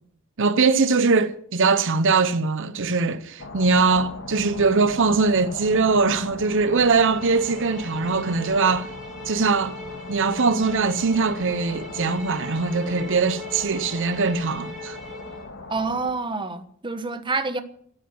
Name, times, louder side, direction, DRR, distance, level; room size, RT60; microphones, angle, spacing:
voice 1, 0.4-8.9 9.3-9.8 10.1-15.0, right 4 dB, 60° right, 0.8 m, -21 dB
sound 1, 3.4-16.1, left 2 dB, 60° left, 1.9 m, -38 dB
sound 2, 6.6-15.5, left 1 dB, ahead, 4.9 m, -40 dB
voice 2, 15.7-17.6, right 3 dB, 20° right, 1.2 m, -27 dB
14.0 x 9.5 x 9.6 m
head